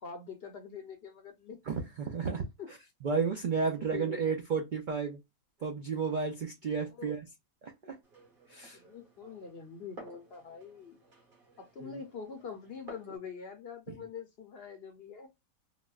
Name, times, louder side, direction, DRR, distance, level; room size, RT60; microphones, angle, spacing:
voice 1, 0.0-1.6 2.6-2.7 3.8-4.2 7.0-7.1 8.7-11.0 11.6-15.3, left 6 dB, 60° left, 0.7 m, -44 dB
voice 2, 1.7-2.5 3.0-5.2 5.6-7.2 7.6-8.0 8.5-8.8 11.8-11.9, right 5 dB, 70° right, 0.4 m, -32 dB
Glass, 8.0-13.2, right 2 dB, 40° right, 1.4 m, -54 dB
3.9 x 2.1 x 2.3 m
omnidirectional pair, 1.5 m